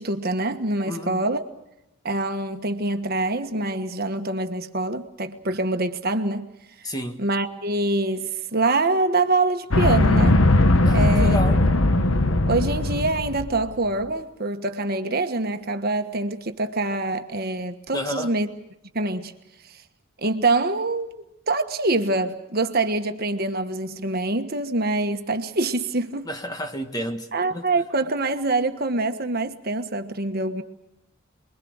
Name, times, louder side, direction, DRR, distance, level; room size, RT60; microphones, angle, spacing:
voice 1, 0.0-1.4 2.0-6.5 7.2-10.4 10.9-11.6 12.5-18.5 18.9-19.3 19.6-19.8 20.2-26.3 27.3-30.6, right 2 dB, 45° right, 1.4 m, -25 dB
voice 2, 0.9-1.2 6.8-7.2 10.8-11.7 17.9-18.3 26.2-27.7, equal, 20° left, 1.5 m, -31 dB
sound 1, 9.7-13.6, left 2 dB, 70° left, 1.3 m, -19 dB
28.5 x 22.5 x 6.4 m
head